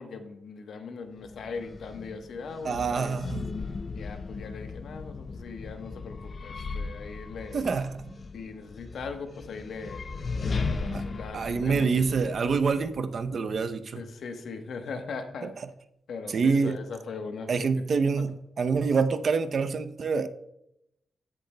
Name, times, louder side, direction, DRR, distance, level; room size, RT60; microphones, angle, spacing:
voice 1, 0.0-3.2 3.9-7.6 8.3-12.2 14.0-15.5 16.1-17.5, left 4 dB, 80° left, 6 dB, 1.1 m, -40 dB
sound 1, 1.2-13.3, left 4 dB, 45° left, 0.5 m, -37 dB
voice 2, 2.6-3.5 7.5-8.1 10.9-11.0 11.3-14.0 15.4-15.7 16.3-16.8 17.5-20.3, right 5 dB, 55° right, 10 dB, 0.6 m, -26 dB
15.5 x 6.7 x 2.2 m, 0.81 s
wide cardioid pair, 110°, 0 cm